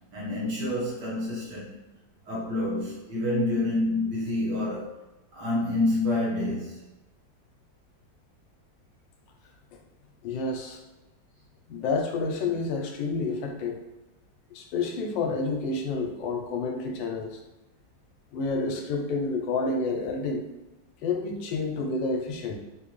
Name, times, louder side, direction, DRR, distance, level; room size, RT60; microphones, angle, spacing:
voice 1, 0.1-1.8 2.3-4.9 5.3-6.8, left 2 dB, 65° right, -7 dB, 1.8 m, -28 dB
voice 2, 10.2-10.8 11.7-13.8 14.5-17.4 18.3-20.4 21.0-22.6, left 3 dB, 85° left, 3 dB, 1.3 m, -29 dB
3.8 x 2.7 x 3.0 m, 1.0 s
omnidirectional pair, 2.0 m